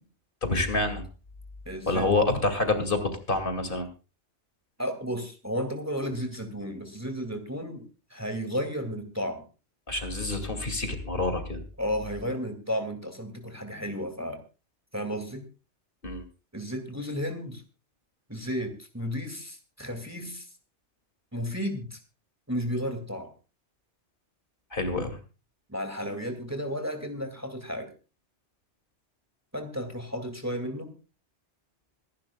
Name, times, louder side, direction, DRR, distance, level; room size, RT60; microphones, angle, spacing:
voice 1, 0.4-1.0 1.9-3.9 9.9-11.6 16.0-16.2 24.7-25.2, left 2 dB, 50° left, 7 dB, 2.5 m, -27 dB
voice 2, 1.7-2.2 4.8-9.5 11.8-14.4 14.9-15.4 16.5-17.6 18.3-20.5 21.3-22.0 22.5-23.3 25.7-27.9 29.5-30.9, equal, 15° right, 6 dB, 2.1 m, -33 dB
25.5 x 11.5 x 2.3 m, 0.33 s
omnidirectional pair, 1.2 m